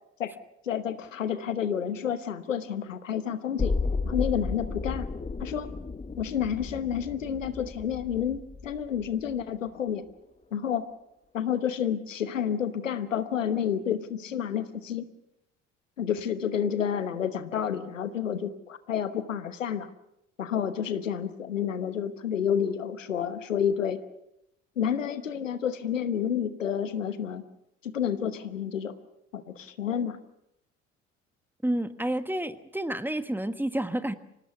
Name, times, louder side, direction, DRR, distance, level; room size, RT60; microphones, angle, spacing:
voice 1, 0.6-3.7 4.0-5.1 5.4-5.7 6.2-10.0 10.5-10.9 11.3-15.0 16.0-19.9 20.4-24.0 24.8-27.4 27.8-28.9 29.3-30.2, left 8 dB, 85° left, 13 dB, 1.1 m, -30 dB
sound 1, 3.6-9.5 9.9-10.0, left 4 dB, 20° left, 1.3 m, -33 dB
voice 2, 31.6-34.1, right 1 dB, 5° right, 12 dB, 1.4 m, -29 dB
25.5 x 18.0 x 7.0 m, 0.83 s
figure-of-eight pair, 55°, 37 cm